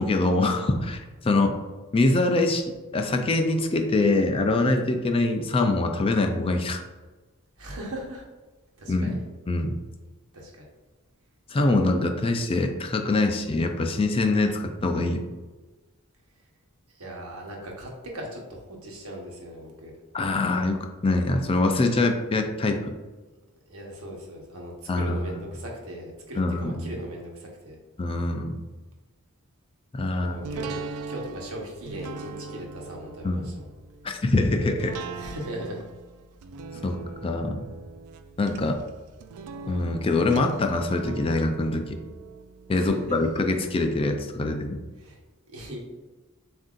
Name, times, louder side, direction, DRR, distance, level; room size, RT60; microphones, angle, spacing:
voice 1, 0.0-1.5 1.9-6.8 8.9-9.2 9.5-9.8 11.5-15.2 20.1-20.8 21.0-22.9 24.9-25.2 26.4-26.9 28.0-28.6 29.9-30.4 33.2-33.5 34.0-35.0 36.8-37.7 38.4-38.8 39.7-42.0 42.7-44.8, left 2 dB, 25° left, 4 dB, 0.3 m, -24 dB
voice 2, 7.6-8.2 8.8-9.2 10.3-10.7 16.9-19.9 23.7-27.8 30.1-33.7 35.2-35.8 42.7-43.2 45.0-45.2 45.5-45.9, right 1 dB, 70° right, -1 dB, 1.1 m, -39 dB
sound 1, 30.4-43.4 43.8-43.9, right 4 dB, 90° right, 0.4 m, -40 dB
7.3 x 2.6 x 2.4 m, 1.2 s
head